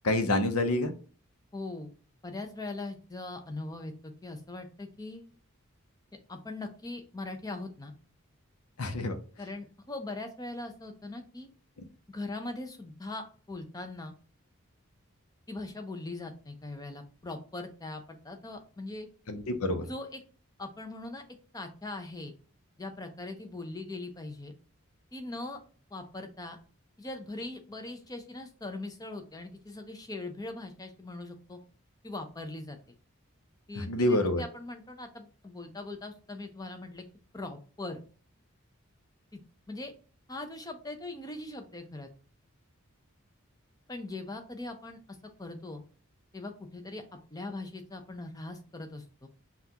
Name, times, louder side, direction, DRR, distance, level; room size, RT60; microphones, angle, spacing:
voice 1, 0.0-0.9 8.8-9.2 19.3-19.9 33.8-34.4, left 1 dB, 85° left, 8 dB, 0.7 m, -27 dB
voice 2, 1.5-1.9 2.2-5.3 6.3-7.9 9.4-11.5 12.1-14.1 15.5-19.1 19.9-20.2 20.6-21.2 21.5-22.3 22.8-24.5 25.1-25.6 25.9-26.6 27.0-31.6 32.0-32.8 33.7-37.1 37.3-38.0 39.3-39.4 39.7-39.9 40.3-42.1 43.9-45.8 46.3-47.0 47.3-49.3, left 2 dB, 15° left, 5 dB, 0.5 m, -40 dB
5.7 x 2.4 x 2.9 m, 0.38 s
head